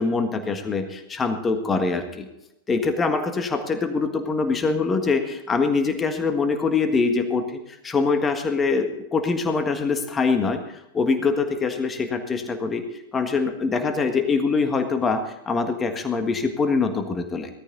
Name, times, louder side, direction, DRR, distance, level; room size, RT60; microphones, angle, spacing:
voice 1, 0.0-2.3 2.7-7.6 7.8-10.6 10.9-12.9 13.1-17.5, left 4 dB, 20° left, 7 dB, 1.5 m, -24 dB
17.5 x 13.5 x 4.0 m, 0.87 s
figure-of-eight pair, 90°, 0 cm